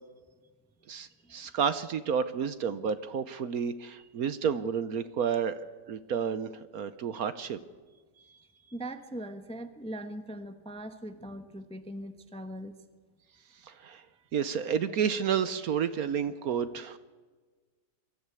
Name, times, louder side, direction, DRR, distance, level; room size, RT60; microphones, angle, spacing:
voice 1, 0.9-5.6 5.9-7.6 13.6-14.1 14.3-17.0, right 7 dB, 65° right, 13 dB, 1.2 m, -30 dB
voice 2, 8.7-12.7, right 1 dB, 5° left, 9 dB, 0.7 m, -40 dB
23.0 x 14.0 x 8.3 m, 1.3 s
omnidirectional pair, 1.9 m